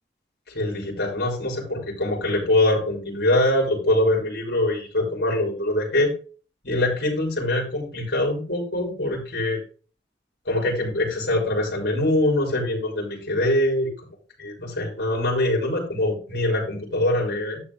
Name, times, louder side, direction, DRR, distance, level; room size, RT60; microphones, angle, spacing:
voice 1, 0.5-6.1 6.6-9.6 10.5-13.9 14.4-17.6, left 1 dB, 65° left, -2 dB, 4.5 m, -23 dB
11.5 x 7.9 x 3.3 m, 0.37 s
head